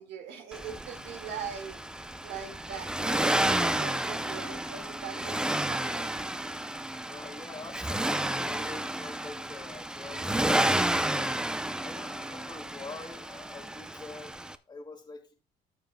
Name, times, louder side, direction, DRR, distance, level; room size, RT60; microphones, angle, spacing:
voice 1, 0.0-1.8 2.2-6.2, right 7 dB, 80° right, 1.9 m, -41 dB
Accelerating revving vroom, 0.5-14.5, right 1 dB, 5° right, 0.4 m, -31 dB
voice 2, 7.0-11.3 11.8-14.3 14.7-15.3, left 3 dB, 25° left, 1.7 m, -45 dB
14.0 x 7.1 x 2.2 m
cardioid pair, 110°, 17 cm